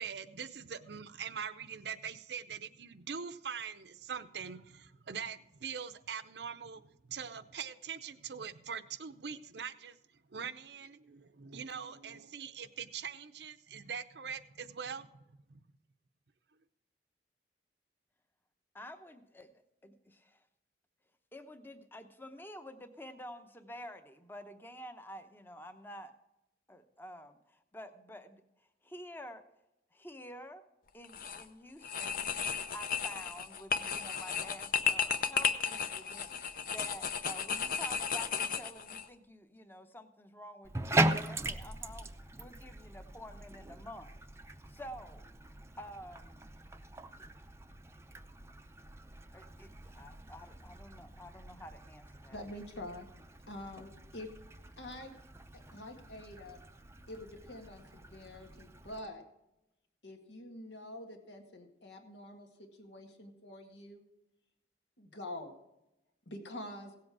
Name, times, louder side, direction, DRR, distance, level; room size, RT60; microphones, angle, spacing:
voice 1, 0.0-10.0 10.3-15.1 15.5-15.6, right 6 dB, 70° right, 12 dB, 0.7 m, -42 dB
voice 2, 18.7-20.5 21.3-26.1 26.7-29.4 29.9-30.6 30.9-32.4 32.7-36.3 36.6-44.2 44.5-46.4 47.2-47.3 49.3-52.4, left 1 dB, 10° left, 9 dB, 0.8 m, -49 dB
sound 1, 31.0-31.4 31.8-39.0, left 6 dB, 50° left, 0.7 m, -34 dB
Bathtub (filling or washing), 40.6-59.0, right 2 dB, 15° right, 0.5 m, -40 dB
voice 3, 52.3-53.1 53.5-54.3 54.8-55.1 55.5-56.6 57.1-59.3 60.0-64.0 65.0-65.5 66.3-66.9, left 1 dB, 85° left, 4 dB, 1.8 m, -46 dB
16.5 x 7.7 x 4.7 m, 0.89 s
head